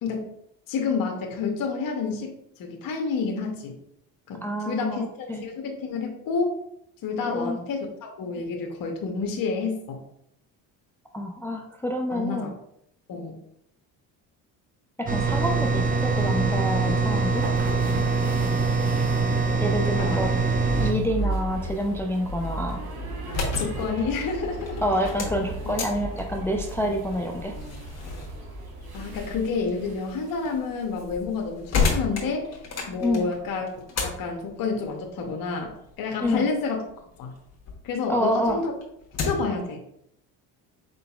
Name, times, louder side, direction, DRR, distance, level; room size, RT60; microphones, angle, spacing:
voice 1, 0.7-2.3 2.6-3.8 4.3-6.5 7.0-10.0 12.1-12.5 13.1-13.4 20.0-20.2 20.9-21.0 23.3-24.8 25.6-25.7 28.9-32.6 32.9-33.7 34.0-35.7 36.0-36.8 37.2-37.3 37.8-38.7 39.2-39.8, left 4 dB, 55° left, 2 dB, 0.9 m, -29 dB
voice 2, 4.4-5.4 7.3-7.6 11.1-12.5 15.0-17.5 19.6-20.3 20.8-22.8 24.8-27.5 33.0-33.3 36.2-36.5 38.1-38.6, equal, 5° left, 2 dB, 0.4 m, -27 dB
sound 1, 15.1-20.9, right 4 dB, 20° right, 0.8 m, -23 dB
sound 2, 16.8-30.6, right 2 dB, 60° right, 1.3 m, -36 dB
sound 3, 23.2-37.8 38.2-39.6, left 4 dB, 40° left, 1.2 m, -34 dB
4.6 x 3.8 x 2.3 m, 0.76 s
supercardioid pair, 80°, 42 cm